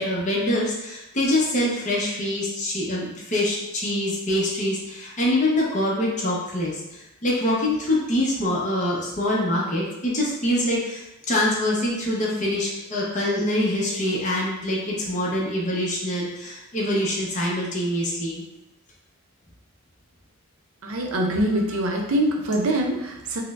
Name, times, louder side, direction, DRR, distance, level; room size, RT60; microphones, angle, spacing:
voice 1, 0.0-18.4, left 1 dB, 35° left, -5 dB, 0.7 m, -25 dB
voice 2, 20.8-23.4, right 1 dB, 75° right, 2 dB, 0.5 m, -24 dB
4.4 x 2.0 x 2.3 m, 0.94 s
head